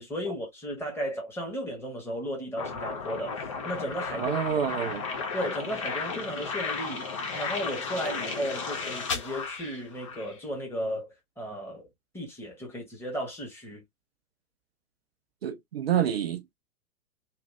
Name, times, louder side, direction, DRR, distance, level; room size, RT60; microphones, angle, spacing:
voice 1, 0.0-4.4 5.3-11.9 12.1-13.8, equal, 5° left, 1.1 m, -35 dB
sound 1, 2.6-10.4, left 4 dB, 25° left, 0.4 m, -34 dB
voice 2, 4.1-5.0 15.4-16.5, right 8 dB, 45° right, 0.4 m, -28 dB
3.1 x 2.6 x 2.4 m
figure-of-eight pair, 110°, 46 cm